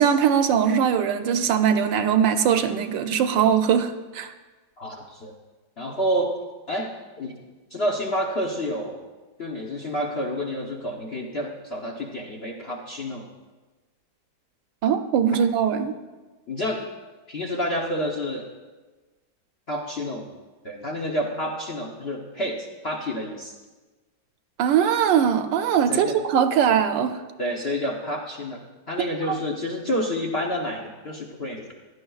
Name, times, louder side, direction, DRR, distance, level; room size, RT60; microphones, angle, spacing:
voice 1, 0.0-4.3 14.8-15.9 24.6-27.2 29.3-29.4, right 8 dB, 80° right, 8 dB, 1.3 m, -21 dB
voice 2, 4.8-5.3 5.8-6.4 6.7-7.3 7.7-9.0 9.4-13.3 16.5-16.9 17.3-18.5 19.7-20.3 20.6-23.5 25.9-26.2 27.4-31.7, equal, 50° left, 0 dB, 0.8 m, -29 dB
16.0 x 11.5 x 2.3 m, 1.2 s
omnidirectional pair, 2.1 m